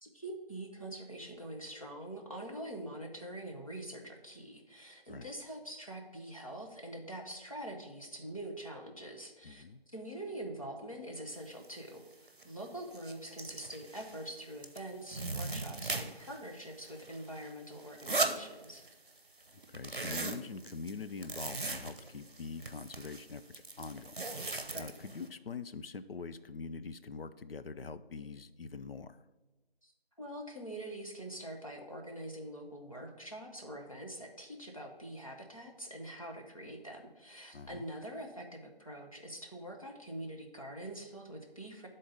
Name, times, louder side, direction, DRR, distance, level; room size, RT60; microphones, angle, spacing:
voice 1, 0.0-18.8 24.7-24.9 29.8-29.9 30.2-41.9, right 1 dB, 35° left, 0 dB, 0.8 m, -44 dB
voice 2, 9.4-9.8 19.7-24.2 24.7-29.2 37.5-37.8, left 4 dB, 70° left, 12 dB, 0.5 m, -44 dB
sound 1, 11.6-11.7 12.1-12.4 12.8-14.3 14.6-16.4 16.7-19.1 19.4-25.3, right 3 dB, 55° right, 0.7 m, -39 dB
10.5 x 3.8 x 3.9 m, 1.2 s
figure-of-eight pair, 175°, 30 cm